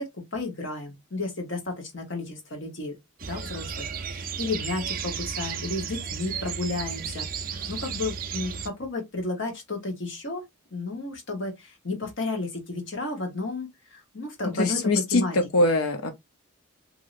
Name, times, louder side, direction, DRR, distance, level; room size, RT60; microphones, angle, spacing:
voice 1, 0.0-2.9 3.2-10.4 10.7-14.8 15.1-15.3, left 2 dB, 55° left, 1.0 m, -32 dB
sound 1, 3.2-8.7, right 6 dB, 40° right, 0.4 m, -34 dB
voice 2, 14.5-16.1, left 2 dB, 80° left, 0.6 m, -23 dB
3.0 x 2.6 x 2.5 m
head